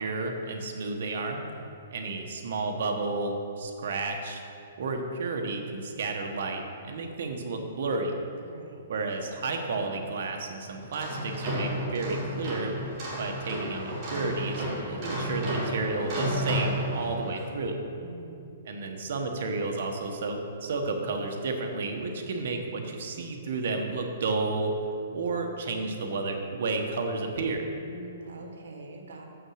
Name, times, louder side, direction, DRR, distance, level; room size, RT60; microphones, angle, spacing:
voice 1, 0.0-1.4 1.9-4.4 4.8-8.2 8.9-12.7 13.2-17.8 18.7-24.7 25.1-27.6, right 3 dB, 60° right, 3 dB, 1.1 m, -32 dB
voice 2, 8.4-8.8 18.0-18.5 27.8-29.3, right 3 dB, 80° right, 3 dB, 1.3 m, -44 dB
sound 1, 10.8-17.5, equal, 30° right, 2.3 m, -32 dB
6.8 x 6.2 x 6.4 m, 2.6 s
hypercardioid pair, 160°, 0 cm